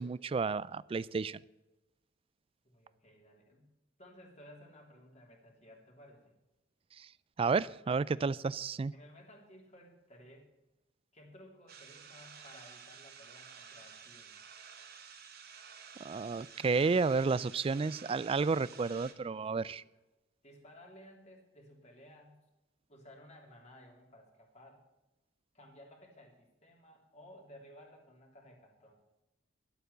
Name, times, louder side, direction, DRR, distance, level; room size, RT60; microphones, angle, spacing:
voice 1, 0.0-1.4 7.0-7.1 7.4-8.9 16.0-19.8, right 4 dB, 30° right, 20 dB, 0.3 m, -31 dB
voice 2, 2.6-3.7 4.0-6.3 8.2-8.3 8.9-10.5 11.1-14.5 19.2-19.8 20.4-22.4 22.9-24.8 25.5-29.0, equal, 35° left, 0 dB, 3.3 m, -57 dB
sound 1, 11.7-19.1, right 7 dB, 50° right, 1.3 m, -52 dB
12.0 x 8.2 x 6.8 m, 1.0 s
head